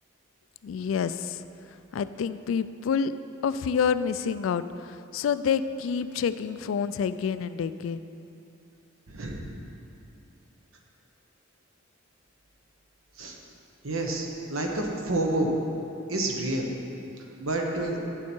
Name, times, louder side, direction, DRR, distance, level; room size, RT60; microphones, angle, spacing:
voice 1, 0.6-1.4 1.9-3.1 3.4-8.1, left 6 dB, 70° left, 13 dB, 0.3 m, -28 dB
voice 2, 9.1-9.5 13.2-13.4 13.8-15.5 16.1-16.7 17.4-18.0, right 2 dB, 80° right, 1 dB, 1.1 m, -29 dB
8.5 x 7.3 x 4.5 m, 2.7 s
head